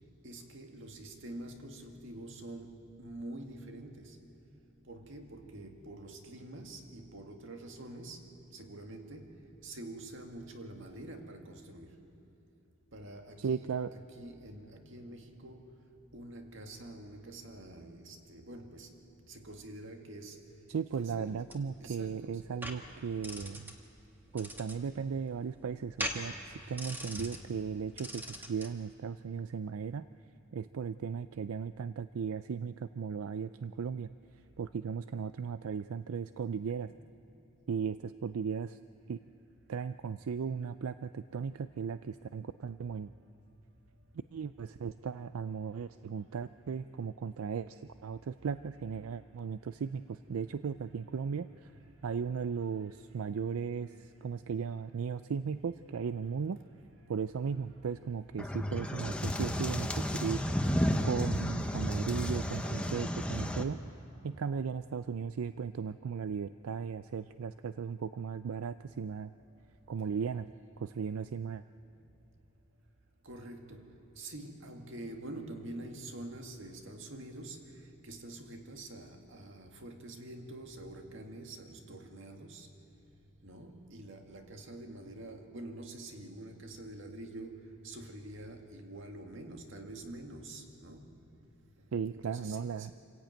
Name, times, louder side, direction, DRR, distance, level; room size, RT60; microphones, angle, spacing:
voice 1, 0.2-4.2 4.8-12.1 12.9-15.8 16.1-20.7 20.9-21.4 21.8-22.5 24.3-24.4 36.9-37.1 43.2-43.5 46.2-46.3 51.9-52.0 52.8-52.9 57.0-57.1 69.5-69.6 72.0-72.1 73.2-82.7 83.4-91.3 91.8-91.9 92.1-92.9, right 1 dB, 65° right, 2.0 m, -47 dB
voice 2, 13.4-13.9 20.7-23.8 24.3-30.1 30.5-34.1 34.6-36.9 37.7-38.8 39.1-39.2 39.7-43.1 44.3-51.7 52.0-56.6 57.1-60.4 61.0-63.8 64.2-69.3 69.9-70.5 70.8-71.6 91.9-92.9, right 6 dB, 90° right, 0.4 m, -36 dB
sound 1, 21.2-28.8, equal, 10° right, 1.6 m, -43 dB
sound 2, 58.4-63.6, equal, 5° left, 1.0 m, -32 dB
26.5 x 15.5 x 9.0 m
head